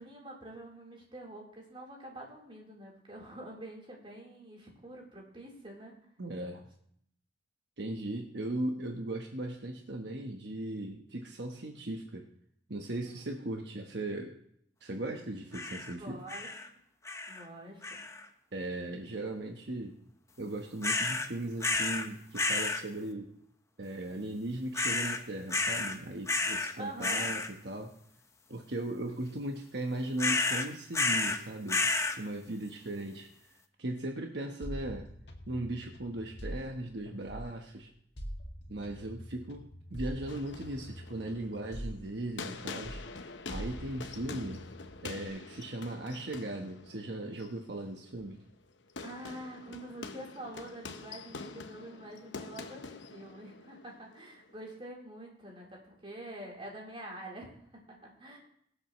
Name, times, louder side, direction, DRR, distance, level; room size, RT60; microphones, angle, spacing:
voice 1, 0.0-6.0 13.0-13.9 15.9-16.5 17.3-18.0 26.8-27.3 49.0-58.4, right 1 dB, 30° right, -2 dB, 3.7 m, -46 dB
voice 2, 6.2-6.6 7.8-12.3 12.7-14.4 14.8-16.2 18.5-20.0 20.4-23.3 23.8-27.9 28.5-31.9 32.2-33.3 33.8-35.1 35.5-37.9 38.7-43.0 43.5-44.6 45.0-48.4, right 1 dB, 65° right, 2 dB, 1.2 m, -38 dB
sound 1, 15.5-15.9 16.3-16.7 17.0-17.4 17.8-18.2 20.8-21.3 21.6-22.1 22.3-22.8 24.7-25.2 25.5-26.0 26.3-26.7 27.0-27.5 30.2-31.4 31.7-32.2, left 3 dB, 15° left, 0.8 m, -31 dB
sound 2, 34.6-37.7 38.2-42.6 42.8-45.3, equal, 70° left, 1.9 m, -44 dB
sound 3, 40.3-54.8, left 4 dB, 85° left, 0.9 m, -46 dB
23.5 x 8.0 x 3.1 m, 0.69 s
head